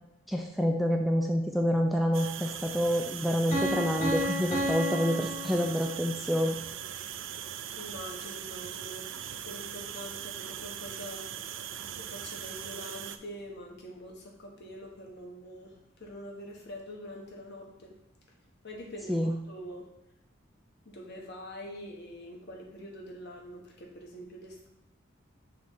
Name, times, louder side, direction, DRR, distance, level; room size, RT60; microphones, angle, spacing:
voice 1, 0.3-6.6 19.1-19.3, equal, ahead, 2 dB, 0.4 m, -27 dB
sound 1, 2.1-13.2, right 10 dB, 65° right, 0.4 m, -40 dB
Piano, 3.5-6.3, equal, 35° left, 1.8 m, -32 dB
voice 2, 7.8-11.3 12.0-18.0 18.6-19.8 20.8-24.7, equal, 55° left, 0 dB, 1.3 m, -44 dB
6.2 x 3.2 x 5.4 m, 0.81 s
head